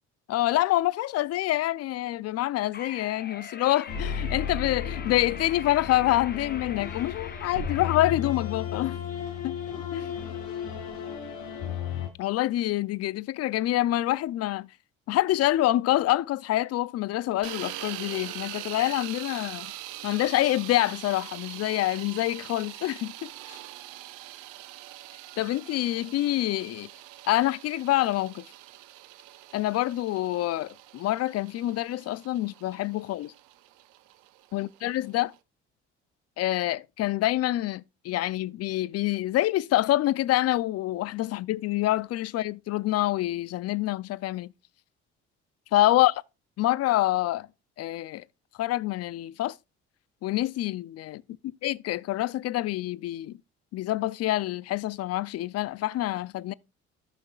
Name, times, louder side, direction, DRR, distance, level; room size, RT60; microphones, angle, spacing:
voice 1, 0.3-9.0 9.4-10.1 12.2-14.7 15.1-19.7 20.0-23.6 25.4-26.9 27.3-28.5 29.5-33.3 34.5-35.3 36.4-44.5 45.7-46.1 46.6-47.5 47.8-48.2 48.6-49.6 50.2-51.2 51.6-53.4 53.7-56.5, left 15 dB, 55° left, 0.4 m, -26 dB
sound 1, 2.7-8.0, left 6 dB, 35° left, 0.8 m, -43 dB
sound 2, 3.9-12.1, left 7 dB, 85° left, 1.8 m, -34 dB
sound 3, 17.4-35.4, right 15 dB, 85° right, 0.6 m, -43 dB
14.5 x 5.9 x 2.4 m
supercardioid pair, 60°, 30 cm